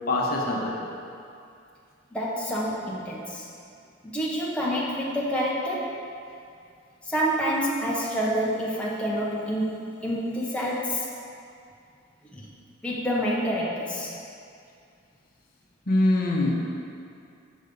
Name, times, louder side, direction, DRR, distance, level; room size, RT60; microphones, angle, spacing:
voice 1, 0.1-0.8 15.9-16.5, left 2 dB, 50° left, -2 dB, 1.0 m, -23 dB
voice 2, 2.1-3.5 4.0-6.0 7.0-11.1 12.3-12.5 12.8-14.1, equal, 5° left, -6 dB, 0.9 m, -28 dB
6.7 x 6.3 x 5.3 m, 2.4 s
head